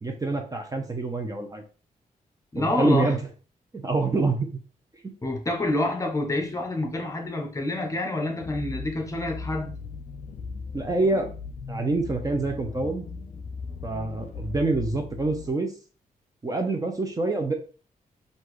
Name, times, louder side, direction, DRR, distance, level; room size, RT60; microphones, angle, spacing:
voice 1, 0.0-1.6 2.6-3.2 3.7-4.5 10.7-11.3 11.7-13.1 13.8-15.7 16.4-17.5, right 3 dB, 25° right, 0.7 m, -26 dB
voice 2, 2.5-3.1 5.2-9.7, left 2 dB, 20° left, 0.9 m, -27 dB
sound 1, 8.4-15.5, left 4 dB, 50° left, 0.7 m, -38 dB
5.7 x 2.7 x 3.2 m
cardioid pair, 110°, 15 cm